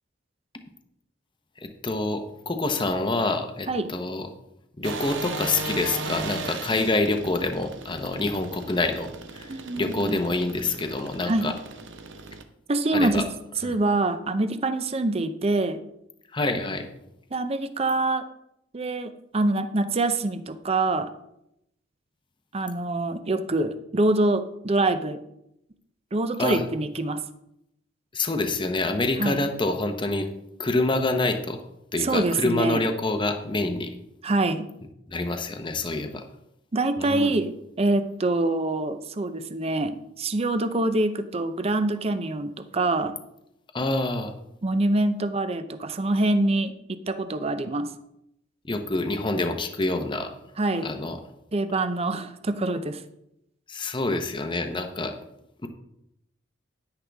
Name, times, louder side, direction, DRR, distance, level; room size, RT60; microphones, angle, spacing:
voice 1, 1.6-4.3 4.8-9.5 9.8-11.5 12.9-13.3 13.6-13.8 16.3-16.9 26.4-26.6 28.1-30.3 30.6-31.6 31.9-33.9 35.1-36.2 37.0-37.3 43.7-44.3 48.6-50.3 50.8-51.2 53.7-55.2 55.6-55.7, left 2 dB, 25° left, 6 dB, 0.8 m, -27 dB
sound 1, 4.8-12.4, right 3 dB, 65° right, 0.8 m, -37 dB
voice 2, 9.5-10.2 11.3-11.5 12.7-13.2 13.6-15.8 17.3-18.2 18.7-21.1 22.5-25.2 26.1-27.2 29.2-29.4 32.0-32.8 34.2-34.7 36.7-37.5 37.8-43.1 44.6-47.9 50.6-50.9 51.5-53.0, right 2 dB, 30° right, 10 dB, 0.6 m, -25 dB
10.0 x 9.9 x 3.4 m, 0.81 s
head